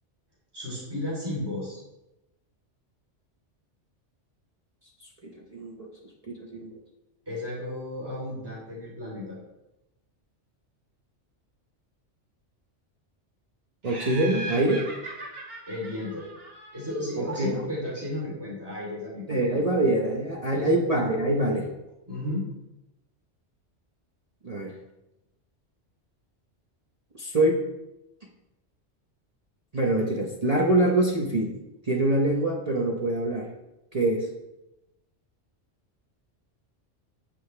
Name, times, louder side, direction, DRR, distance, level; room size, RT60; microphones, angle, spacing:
voice 1, 0.5-1.8 7.2-9.4 15.7-16.2 16.7-19.4 20.5-20.7 22.1-22.4, left 1 dB, 20° right, -7 dB, 3.3 m, -33 dB
voice 2, 5.4-5.9 6.3-6.7 13.8-14.8 17.2-17.6 19.3-21.7 24.4-24.7 27.2-27.6 29.7-31.6 31.8-33.5 33.9-34.3, right 1 dB, 35° right, -2 dB, 0.9 m, -24 dB
Laughter, 13.8-17.2, right 2 dB, 55° right, 2.6 m, -39 dB
8.5 x 7.7 x 3.3 m, 0.94 s
omnidirectional pair, 1.2 m